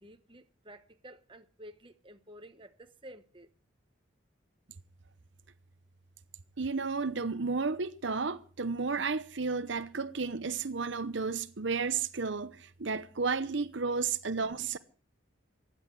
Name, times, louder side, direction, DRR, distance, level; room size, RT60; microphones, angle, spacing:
voice 1, 0.0-3.5, equal, 25° right, 1.1 m, -52 dB
voice 2, 6.6-14.8, right 4 dB, 70° right, 0.8 m, -32 dB
16.0 x 10.5 x 7.7 m
head